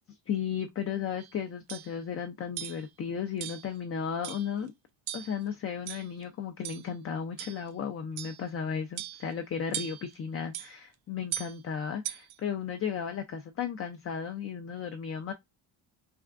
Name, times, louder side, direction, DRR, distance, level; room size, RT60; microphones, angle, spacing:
voice 1, 0.3-4.7 5.1-15.3, left 7 dB, 30° left, 0.4 m, -34 dB
sound 1, 1.2-1.3 1.7-1.9 2.6-2.9 3.4-3.7 4.2-4.5 5.1-5.4 5.9-6.2 6.6-6.9 7.4-7.7 8.2-8.4 9.0-9.3 9.7-10.1 10.5-10.7 11.3-11.6 12.0-12.4, right 12 dB, 85° right, 0.5 m, -39 dB
3.4 x 2.4 x 2.4 m
cardioid pair, 100°, 47 cm